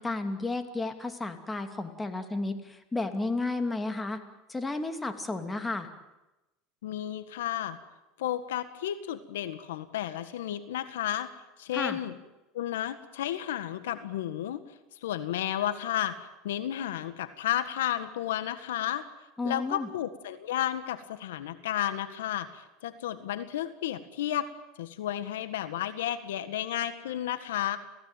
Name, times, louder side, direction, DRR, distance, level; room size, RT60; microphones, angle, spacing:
voice 1, 0.0-4.2 4.5-5.9 11.7-12.0 19.4-19.9, left 3 dB, 15° left, 7 dB, 2.7 m, -32 dB
voice 2, 6.8-7.8 8.2-11.3 11.6-12.1 12.5-14.6 15.0-16.2 16.4-19.0 19.4-24.5 24.8-27.8, left 11 dB, 90° left, 12 dB, 1.7 m, -32 dB
29.5 x 16.0 x 9.2 m, 0.99 s
supercardioid pair, 115°, 0 cm